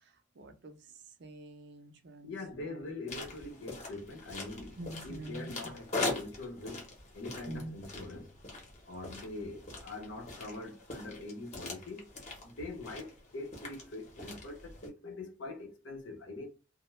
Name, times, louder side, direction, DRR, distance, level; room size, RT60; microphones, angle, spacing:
voice 1, 0.4-0.8 1.2-2.4 2.7-2.8 4.8-5.5 7.5-7.7, right 1 dB, 60° right, 0.5 m, -45 dB
voice 2, 2.2-8.3 8.8-12.1 12.4-16.5, left 2 dB, 70° left, 0.7 m, -43 dB
sound 1, 3.1-14.9, left 2 dB, 35° left, 0.9 m, -42 dB
2.2 x 2.1 x 3.1 m
head